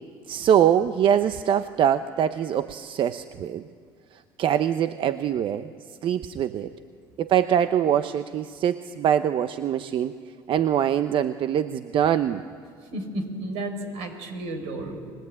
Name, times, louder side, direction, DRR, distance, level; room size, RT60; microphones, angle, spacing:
voice 1, 0.3-3.7 4.1-5.7 6.0-6.7 7.2-10.1 10.5-12.4, right 9 dB, 55° right, 11 dB, 0.8 m, -23 dB
voice 2, 12.9-15.0, right 1 dB, 80° right, 6 dB, 4.8 m, -32 dB
30.0 x 21.0 x 8.7 m, 2.1 s
supercardioid pair, 85°, 11 cm